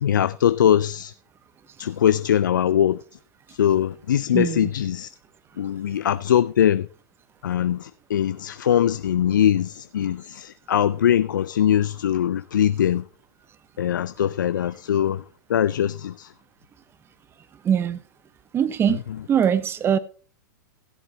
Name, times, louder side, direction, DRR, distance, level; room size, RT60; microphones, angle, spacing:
voice 1, 0.0-1.1 1.8-3.0 3.5-5.1 5.6-6.9 7.4-13.0 13.8-15.2 15.5-16.3, left 10 dB, 80° left, 0.4 m, -21 dB
voice 2, 4.3-4.7 17.6-18.0 18.5-19.0 19.3-20.0, right 8 dB, 25° right, 0.7 m, -21 dB
16.0 x 8.1 x 3.2 m
hypercardioid pair, 110°, 10 cm